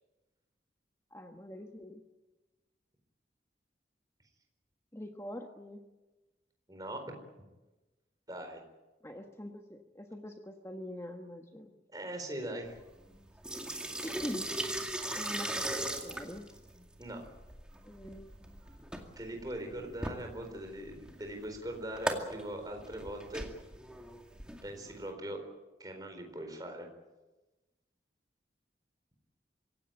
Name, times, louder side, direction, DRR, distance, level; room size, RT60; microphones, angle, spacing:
voice 1, 1.1-2.0 4.9-5.9 9.0-11.7 14.0-14.5 15.1-16.4 17.8-18.3, left 1 dB, 15° left, 4 dB, 1.3 m, -44 dB
voice 2, 6.7-7.1 8.3-8.6 11.9-12.8 17.0-17.2 19.2-23.5 24.6-25.4 25.8-26.9, right 1 dB, 20° right, 4 dB, 4.3 m, -41 dB
sound 1, 12.6-25.1, right 1 dB, 5° right, 2.2 m, -39 dB
26.0 x 16.5 x 9.0 m, 1.1 s
head